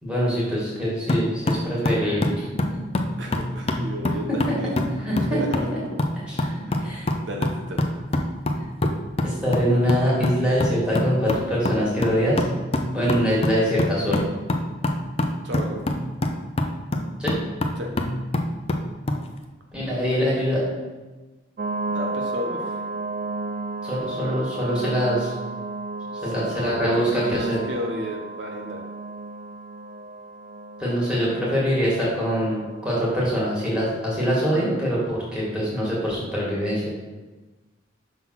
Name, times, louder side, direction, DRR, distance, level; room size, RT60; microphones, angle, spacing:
voice 1, 0.0-2.5 4.5-4.6 5.0-5.4 6.3-7.1 9.2-12.4 12.9-14.2 17.2-17.3 19.7-20.6 23.8-25.3 26.2-27.6 30.8-36.9, equal, 5° right, -7 dB, 2.0 m, -24 dB
sound 1, 1.1-19.2, left 1 dB, 30° left, 0.5 m, -26 dB
voice 2, 3.2-4.3 4.5-4.7 5.1-5.7 6.6-6.9 7.2-8.0 15.4-15.8 17.7-17.9 21.9-22.8 26.3-26.4 26.8-28.8, equal, 70° right, 1 dB, 0.8 m, -32 dB
sound 2, 21.6-35.2, right 3 dB, 40° right, 0.3 m, -34 dB
5.9 x 3.8 x 5.9 m, 1.2 s
head